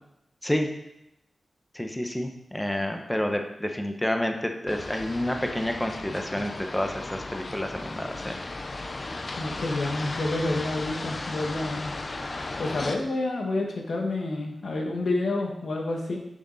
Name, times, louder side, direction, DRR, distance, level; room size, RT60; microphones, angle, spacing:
voice 1, 1.7-8.4, left 1 dB, 10° left, 4 dB, 1.1 m, -29 dB
sound 1, 4.7-13.0, left 2 dB, 45° left, 0.9 m, -35 dB
voice 2, 9.4-11.9 12.6-16.2, left 2 dB, 75° left, 1 dB, 1.7 m, -29 dB
10.0 x 6.5 x 4.2 m, 0.84 s
wide cardioid pair, 90°, 0 cm